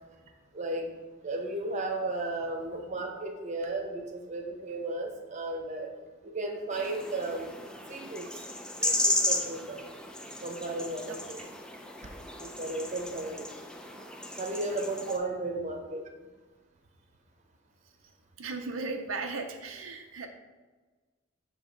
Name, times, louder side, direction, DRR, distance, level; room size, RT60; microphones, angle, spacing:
voice 1, 0.5-0.9 1.2-5.9 6.2-7.5 7.9-8.4 8.8-9.8 10.4-11.4 12.4-13.5 14.4-16.0, right 2 dB, 35° right, 3 dB, 0.9 m, -34 dB
sound 1, 6.7-15.2, left 1 dB, 5° left, 0.5 m, -34 dB
voice 2, 11.1-11.5 15.1-15.2 18.4-20.3, right 3 dB, 90° right, 4 dB, 0.7 m, -37 dB
7.1 x 3.5 x 5.1 m, 1.3 s
head